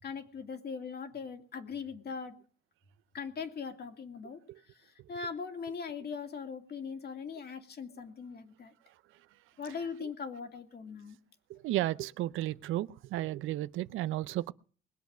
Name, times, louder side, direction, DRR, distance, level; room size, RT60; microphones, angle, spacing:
voice 1, 0.0-2.4 3.1-4.4 4.7-8.7 9.6-11.2, left 5 dB, 55° left, 2.5 m, -40 dB
voice 2, 11.5-14.5, right 15 dB, 90° right, 0.6 m, -33 dB
21.0 x 8.2 x 6.1 m
cardioid pair, 90°, 20 cm